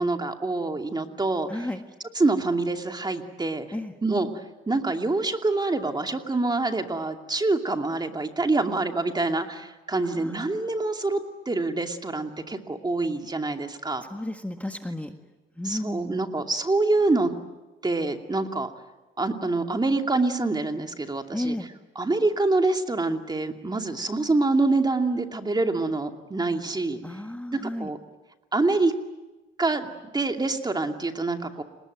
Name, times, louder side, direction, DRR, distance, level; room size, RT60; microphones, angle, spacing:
voice 1, 0.0-1.7 2.1-3.7 4.0-4.3 4.7-11.2 11.5-14.0 15.6-17.3 17.8-18.7 19.2-21.6 22.0-27.0 27.5-28.0 28.5-28.9 29.6-31.6, right 2 dB, 20° right, 5 dB, 2.6 m, -26 dB
voice 2, 1.5-1.8 3.7-3.9 10.0-10.9 14.0-15.1 15.6-16.2 21.3-21.7 27.0-27.9, left 1 dB, 5° left, 5 dB, 1.7 m, -33 dB
30.0 x 19.5 x 9.3 m, 1.1 s
cardioid pair, 90°, 20 cm